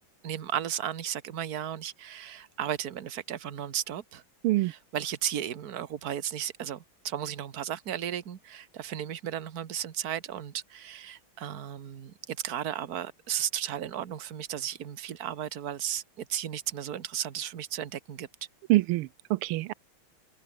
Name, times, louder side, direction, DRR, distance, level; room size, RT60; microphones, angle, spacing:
voice 1, 0.2-4.2 4.6-18.3, right 10 dB, 50° right, 1.6 m, -35 dB
voice 2, 18.7-19.7, right 18 dB, 90° right, 1.5 m, -25 dB
omnidirectional pair, 2.3 m